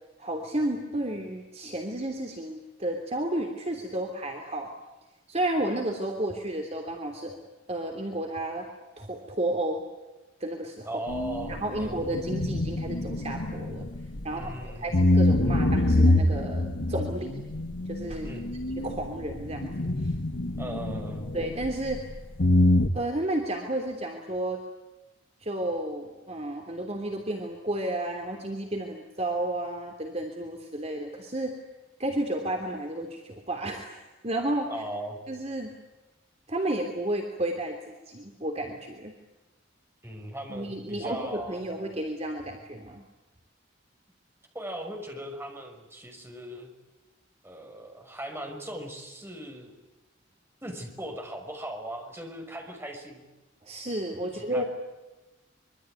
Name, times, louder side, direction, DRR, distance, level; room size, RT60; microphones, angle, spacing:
voice 1, 0.2-4.7 5.3-7.4 7.7-8.7 9.0-9.9 10.4-10.9 11.5-13.9 14.2-17.4 17.9-18.3 18.8-20.1 21.3-22.1 22.9-24.6 25.4-31.6 32.0-34.7 35.3-35.8 36.5-39.2 40.5-43.0 53.6-54.6, right 1 dB, 35° right, 2 dB, 3.2 m, -32 dB
voice 2, 10.9-12.0 14.3-15.1 18.2-18.5 20.6-21.4 34.7-35.2 40.0-41.7 44.5-46.7 47.4-49.8 50.6-53.3 54.2-54.6, right 1 dB, 15° right, 3 dB, 5.9 m, -38 dB
sound 1, 11.1-14.5 14.9-22.1 22.4-22.9, left 1 dB, 65° left, 1.5 m, -25 dB
25.0 x 24.0 x 9.3 m, 1.1 s
head